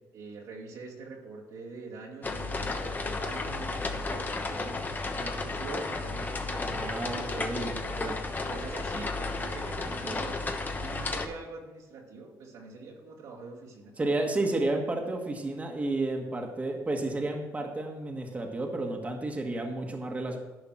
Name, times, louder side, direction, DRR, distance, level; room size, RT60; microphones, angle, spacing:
voice 1, 0.1-4.8 5.1-10.4 10.7-13.9, right 3 dB, 75° right, -3 dB, 2.1 m, -44 dB
sound 1, 2.2-11.3, left 3 dB, 30° left, 1.1 m, -33 dB
voice 2, 6.7-8.1 9.8-10.3 14.0-20.4, right 2 dB, 20° right, 2 dB, 1.4 m, -32 dB
11.0 x 5.1 x 6.1 m, 1.1 s
cardioid pair, 90°, 6 cm